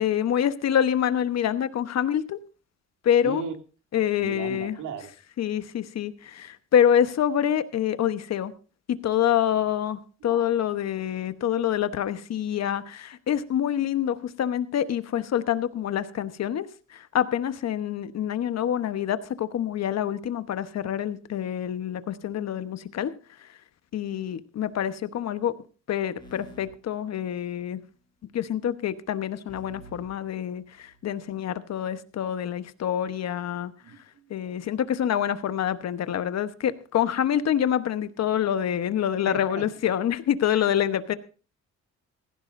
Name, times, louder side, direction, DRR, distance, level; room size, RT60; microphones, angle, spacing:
voice 1, 0.0-2.4 3.0-3.4 3.9-4.8 5.4-8.5 8.9-23.1 23.4-23.6 23.9-25.5 25.9-27.8 28.3-33.7 34.3-41.2, left 10 dB, 60° left, 12 dB, 1.1 m, -26 dB
voice 2, 3.2-3.5 4.2-5.1 10.3-10.5 33.8-34.3 39.3-39.7 40.5-40.7, right 6 dB, 80° right, 5 dB, 2.3 m, -36 dB
sound 1, 26.2-27.8 29.5-31.2, right 1 dB, 15° left, 4.9 m, -50 dB
16.0 x 15.0 x 2.6 m, 0.36 s
cardioid pair, 90°, 30 cm